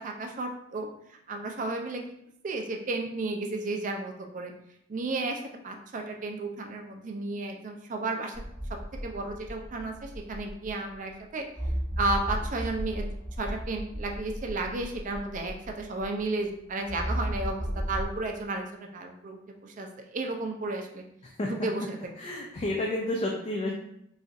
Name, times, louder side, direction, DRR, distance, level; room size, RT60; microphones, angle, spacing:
voice 1, 0.0-2.0 2.4-4.5 4.9-8.3 8.7-11.5 12.0-13.0 13.4-21.0 21.6-22.0, right 2 dB, 40° right, 3 dB, 0.4 m, -33 dB
sound 1, 8.3-10.9 11.5-16.2 16.9-18.1, equal, 50° left, 1.4 m, -35 dB
voice 2, 22.2-23.7, left 1 dB, 30° left, -1 dB, 0.3 m, -30 dB
4.0 x 2.4 x 2.5 m, 0.74 s
head